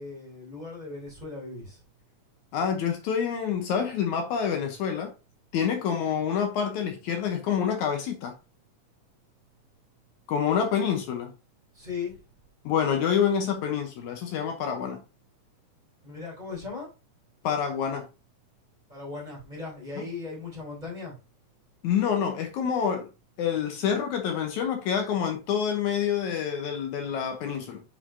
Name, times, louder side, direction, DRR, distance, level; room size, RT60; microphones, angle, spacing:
voice 1, 0.0-1.8 11.7-12.2 16.0-16.9 18.9-21.1, left 4 dB, 15° right, 2.9 m, -37 dB
voice 2, 2.5-5.1 5.5-8.3 10.3-11.3 12.6-15.0 17.4-18.1 20.0-20.1 21.8-23.1 23.4-27.8, left 7 dB, 75° left, 2.2 m, -27 dB
7.4 x 5.7 x 2.7 m
omnidirectional pair, 3.7 m